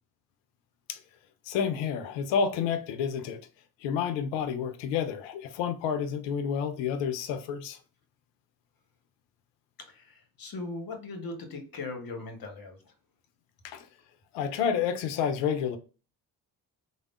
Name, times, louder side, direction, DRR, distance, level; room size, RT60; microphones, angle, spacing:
voice 1, 1.5-3.4 3.8-7.8 13.6-13.9 14.3-15.8, left 7 dB, 65° left, 0.6 m, -29 dB
voice 2, 9.9-12.8, left 3 dB, 45° left, 1.0 m, -39 dB
3.3 x 2.1 x 2.4 m
hypercardioid pair, 45°, 48 cm